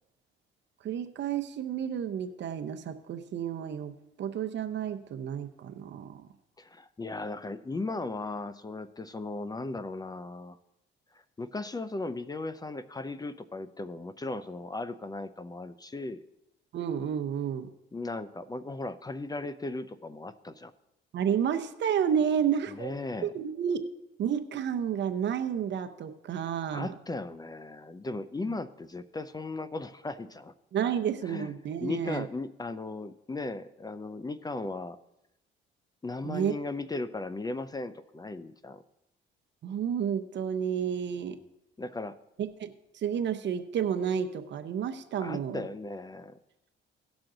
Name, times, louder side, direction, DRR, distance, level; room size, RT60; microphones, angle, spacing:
voice 1, 0.8-3.9 4.2-6.2 16.7-17.7 21.1-22.9 23.2-23.8 24.2-26.9 30.7-32.3 36.2-36.5 39.6-41.4 42.6-42.7 43.0-45.7, right 8 dB, 65° right, 8 dB, 0.8 m, -31 dB
voice 2, 6.6-10.6 11.4-16.3 17.9-20.7 22.7-23.3 26.7-30.5 31.2-31.5 31.8-35.0 36.0-38.8 41.8-42.2 45.2-46.4, left 2 dB, 20° left, 13 dB, 0.5 m, -37 dB
17.0 x 6.1 x 3.8 m, 0.87 s
cardioid pair, 90°, 20 cm